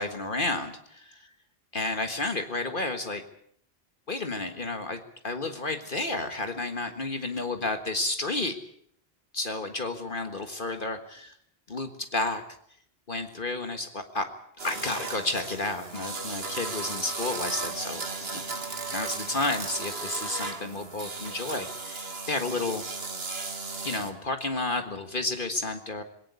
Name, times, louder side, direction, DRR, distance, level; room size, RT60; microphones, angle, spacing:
voice 1, 0.0-1.3 1.7-3.2 4.1-8.6 9.3-11.3 11.7-12.4 13.1-14.3 14.6-18.0 18.3-18.4 18.9-22.8 23.8-26.0, left 2 dB, 55° left, 7 dB, 1.8 m, -31 dB
sound 1, 14.6-24.1, right 3 dB, 70° right, 2.1 m, -36 dB
21.5 x 17.5 x 8.3 m, 0.65 s
omnidirectional pair, 1.1 m